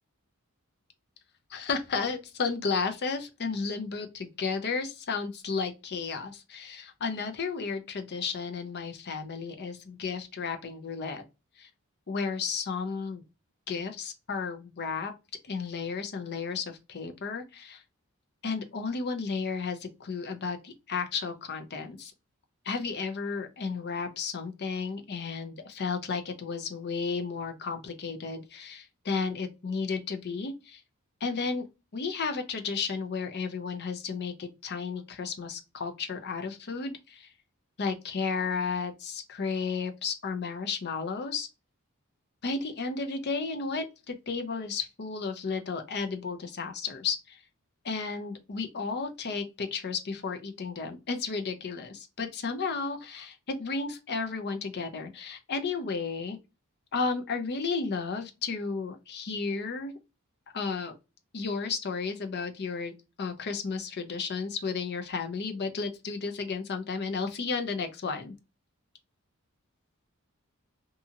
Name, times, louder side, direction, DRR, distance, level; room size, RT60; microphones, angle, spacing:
voice 1, 1.5-11.2 11.6-11.7 12.1-13.2 13.7-15.1 15.5-17.8 18.4-22.1 22.6-30.8 31.2-31.7 31.9-37.3 37.8-41.5 42.4-47.4 47.8-56.4 56.9-59.9 60.5-60.9 61.3-62.9 63.2-68.3, left 4 dB, 50° left, 0.6 m, -33 dB
2.7 x 2.7 x 2.4 m
head